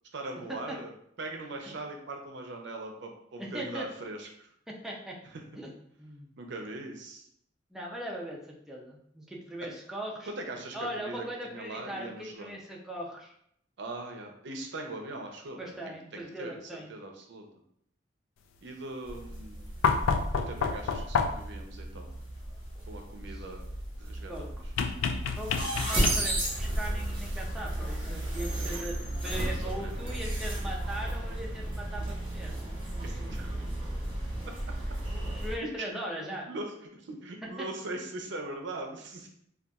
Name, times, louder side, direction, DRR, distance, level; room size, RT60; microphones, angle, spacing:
voice 1, 0.1-0.9 1.2-4.5 5.2-5.4 6.4-7.3 9.6-9.7 10.3-12.5 13.8-16.5 16.9-17.5 18.6-19.7 20.3-22.1 22.9-23.6 24.0-24.5 29.2-30.2 33.0-33.5 35.6-35.9 36.2-39.3, right 2 dB, 65° right, 3 dB, 0.5 m, -41 dB
voice 2, 3.4-3.9 4.7-5.2 5.6-5.7 6.0-6.3 7.7-10.3 10.7-13.3 15.6-16.9 23.3-23.4 24.3-24.5 25.4-25.5 25.8-32.6 35.4-36.5, right 1 dB, ahead, -3 dB, 0.4 m, -39 dB
sound 1, 19.1-35.6, right 1 dB, 30° right, 0.9 m, -34 dB
sound 2, 19.8-21.6 24.8-26.5 28.0-28.1, left 5 dB, 85° left, 0.3 m, -29 dB
3.9 x 2.3 x 2.3 m, 0.70 s
head